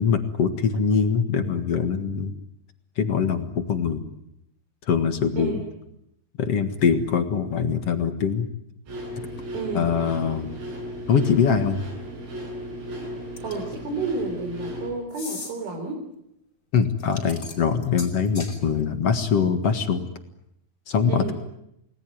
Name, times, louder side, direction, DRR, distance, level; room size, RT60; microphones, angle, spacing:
voice 1, 0.0-2.3 3.0-4.1 4.9-5.6 6.4-8.5 9.7-10.6 11.1-11.8 16.7-20.1 20.9-21.3, left 6 dB, 55° left, 7 dB, 1.7 m, -23 dB
sound 1, 8.9-14.9, equal, 85° right, 10.5 m, -35 dB
voice 2, 9.5-9.9 13.4-16.0 21.1-21.3, right 3 dB, 55° right, 1 dB, 5.8 m, -30 dB
sound 2, 13.4-13.7 15.1-15.5 17.0-18.6, left 3 dB, 25° left, 4.7 m, -38 dB
29.5 x 20.0 x 9.3 m, 0.80 s
omnidirectional pair, 5.2 m